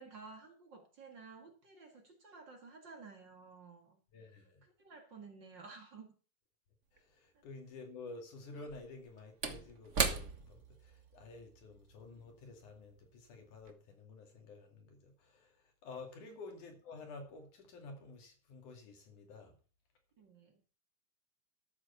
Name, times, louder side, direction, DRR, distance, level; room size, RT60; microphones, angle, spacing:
voice 1, 0.0-4.0 4.6-6.1 7.3-7.4 16.2-16.4 20.2-20.6, right 4 dB, 40° right, 2.2 m, -54 dB
voice 2, 4.1-4.6 6.9-15.5 15.8-19.5, left 3 dB, 80° left, 4.0 m, -51 dB
Slam / Wood, 7.0-7.1 8.5-13.2 13.6-13.7, right 4 dB, 60° right, 0.7 m, -39 dB
13.0 x 6.6 x 7.0 m
omnidirectional pair, 3.5 m